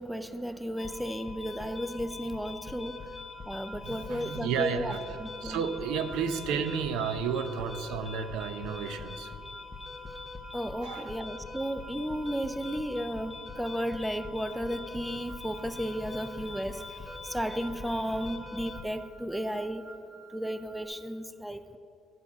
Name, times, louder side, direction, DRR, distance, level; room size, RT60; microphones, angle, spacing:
voice 1, 0.0-3.0 3.5-4.9 5.2-5.6 10.5-19.9 20.3-21.8, equal, ahead, 11 dB, 0.3 m, -34 dB
sound 1, 0.8-18.8, left 4 dB, 20° left, 0.7 m, -43 dB
sound 2, 3.2-20.9, right 4 dB, 55° right, 1.5 m, -54 dB
voice 2, 3.8-5.0 5.4-9.3 10.8-11.2, right 7 dB, 85° right, 10 dB, 0.6 m, -32 dB
11.5 x 5.2 x 6.9 m, 2.4 s
cardioid pair, 150°, 0 cm